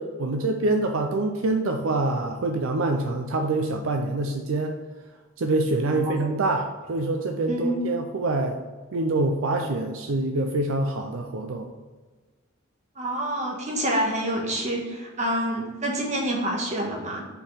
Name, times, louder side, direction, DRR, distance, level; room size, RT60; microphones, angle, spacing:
voice 1, 0.0-4.7 5.4-8.6 8.9-11.7, right 2 dB, 70° right, 4 dB, 0.5 m, -25 dB
voice 2, 7.5-7.8 12.9-17.2, right 1 dB, 35° right, -1 dB, 1.5 m, -27 dB
5.5 x 4.4 x 6.2 m, 1.4 s
head